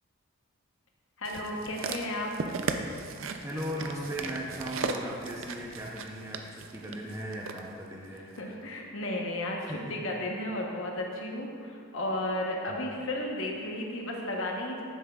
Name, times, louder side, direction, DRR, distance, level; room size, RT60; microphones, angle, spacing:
voice 1, 1.2-2.3 8.4-9.6 9.9-14.8, left 1 dB, 65° left, 0 dB, 1.0 m, -33 dB
sound 1, 1.3-7.6 8.4-8.5, right 4 dB, 65° right, 0.5 m, -37 dB
voice 2, 3.4-8.3 9.6-10.0 12.7-12.8, equal, 15° right, -4 dB, 0.6 m, -38 dB
10.0 x 7.5 x 2.3 m, 2.3 s
head